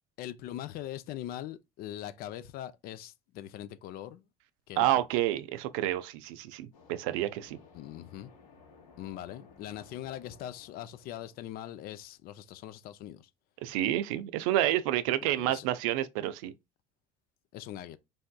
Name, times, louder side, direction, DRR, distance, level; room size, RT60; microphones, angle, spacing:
voice 1, 0.2-4.2 4.7-5.1 7.7-8.3 9.0-13.3 15.4-15.7 17.5-18.0, left 12 dB, 60° left, 0.4 m, -41 dB
voice 2, 4.8-7.6 13.6-16.5, right 13 dB, 80° right, 0.4 m, -29 dB
sound 1, 6.7-12.4, left 5 dB, 90° left, 1.0 m, -58 dB
3.4 x 2.7 x 2.2 m
supercardioid pair, 80°, 17 cm